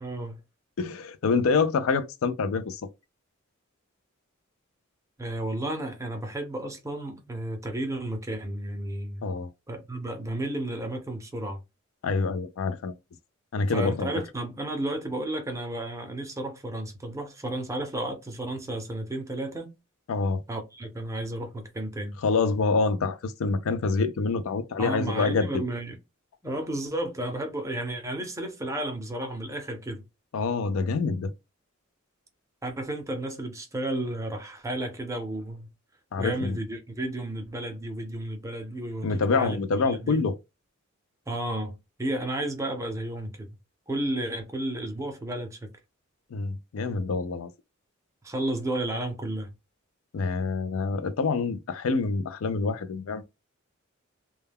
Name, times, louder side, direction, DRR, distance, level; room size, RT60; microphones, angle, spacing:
voice 1, 0.0-0.4 5.2-9.3 9.7-11.6 13.7-19.7 20.5-22.2 24.8-26.0 26.4-30.0 32.6-35.7 36.2-39.6 39.8-40.2 41.3-43.6 43.9-45.7 48.2-49.5, right 1 dB, 15° right, 0.6 m, -32 dB
voice 2, 0.8-2.8 9.2-9.5 12.0-12.9 13.5-14.1 20.1-20.4 22.2-25.6 30.3-31.3 36.1-36.6 39.0-40.4 46.3-47.5 50.1-53.2, left 4 dB, 70° left, 0.4 m, -26 dB
2.2 x 2.2 x 3.3 m
head